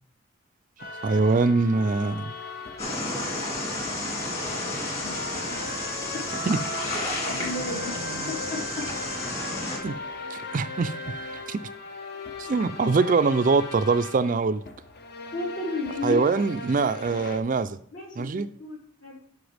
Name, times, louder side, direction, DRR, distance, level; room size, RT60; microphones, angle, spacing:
sound 1, 0.8-17.4, left 2 dB, 50° left, 0.9 m, -38 dB
voice 1, 1.0-2.3 6.5-6.6 7.7-8.3 9.8-10.0 10.3-10.9 11.5-11.6 12.4-14.6 16.0-17.8 18.2-18.5, right 4 dB, 40° right, 0.4 m, -23 dB
sound 2, 2.8-9.8, left 2 dB, 30° left, 2.2 m, -31 dB
voice 2, 7.3-7.9 8.3-8.9 15.3-16.2 17.9-19.2, left 3 dB, 70° left, 4.1 m, -33 dB
11.5 x 5.6 x 3.4 m
head